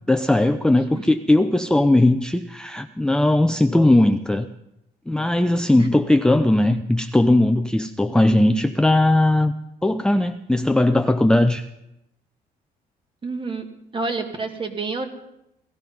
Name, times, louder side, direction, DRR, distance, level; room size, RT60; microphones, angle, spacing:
voice 1, 0.1-4.5 5.1-9.5 9.8-11.6, left 1 dB, 5° left, 7 dB, 0.5 m, -18 dB
voice 2, 13.2-13.6 13.9-15.1, right 3 dB, 30° right, 6 dB, 2.2 m, -28 dB
18.0 x 14.0 x 5.4 m, 0.85 s
cardioid pair, 110°, 17 cm